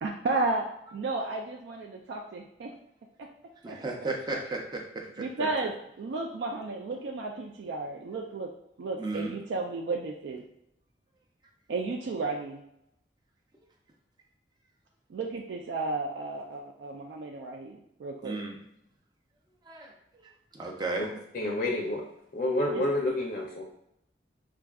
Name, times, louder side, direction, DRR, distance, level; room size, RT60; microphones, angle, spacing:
voice 1, 0.0-0.6 0.9-2.7 3.2-3.3 3.7-3.8 5.2-8.5 8.8-10.4 11.7-12.6 15.1-18.4 22.7-22.8, right 3 dB, 85° right, 2 dB, 0.3 m, -33 dB
voice 2, 3.6-5.5 9.0-9.4 18.2-18.6 19.7-19.9 20.5-21.1, right 2 dB, 25° right, 1 dB, 0.5 m, -34 dB
voice 3, 21.3-22.0 22.3-23.6, left 1 dB, 50° left, -2 dB, 0.4 m, -29 dB
4.6 x 2.5 x 2.3 m, 0.79 s
head